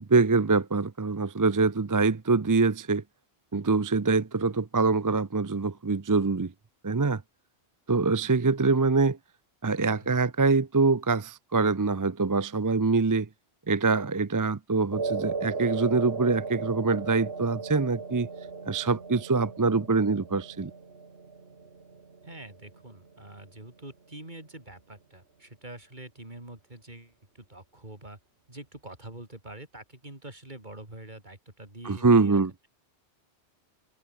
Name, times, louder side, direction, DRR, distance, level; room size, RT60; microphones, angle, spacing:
voice 1, 0.0-3.0 3.5-6.5 6.8-7.2 7.9-9.2 9.6-13.3 13.7-18.3 18.7-20.7 31.8-32.5, right 4 dB, 25° right, 0.5 m, -24 dB
voice 2, 9.8-10.2 22.2-28.2 28.5-32.4, right 1 dB, 45° right, 4.6 m, -45 dB
sound 1, 14.9-23.4, right 4 dB, 65° right, 2.1 m, -37 dB
omnidirectional pair, 1.1 m